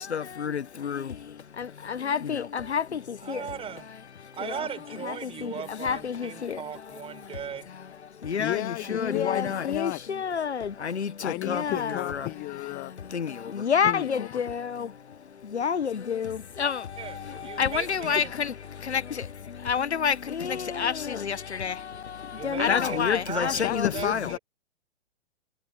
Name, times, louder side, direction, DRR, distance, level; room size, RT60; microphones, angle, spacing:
voice 1, 0.1-1.0 1.9-2.8 3.3-3.4 5.4-5.5 5.8-6.6 8.3-8.6 8.9-12.3 13.1-13.3 13.6-14.9 15.5-16.8 17.6-18.5 18.9-19.0 19.7-21.7 22.4-24.3, left 7 dB, 70° left, 1.2 m, -28 dB
voice 2, 3.2-3.9 4.3-7.6 17.0-18.3 22.3-24.4, right 8 dB, 15° right, 6.5 m, -38 dB
voice 3, 8.4-10.0 11.2-12.9 13.8-14.4 23.6-24.4, left 22 dB, 25° left, 1.4 m, -33 dB
figure-of-eight pair, 115°, 35 cm